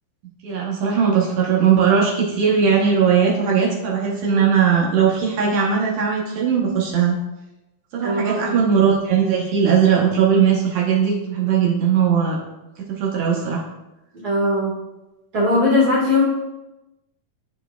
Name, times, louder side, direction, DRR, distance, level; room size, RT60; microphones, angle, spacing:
voice 1, 0.4-7.2 7.9-12.4 12.9-13.6, right 7 dB, 70° right, -4 dB, 1.8 m, -19 dB
voice 2, 8.0-8.6 14.2-14.7 15.3-16.2, left 2 dB, 45° right, -6 dB, 1.3 m, -19 dB
12.0 x 4.5 x 2.2 m, 0.98 s
omnidirectional pair, 4.2 m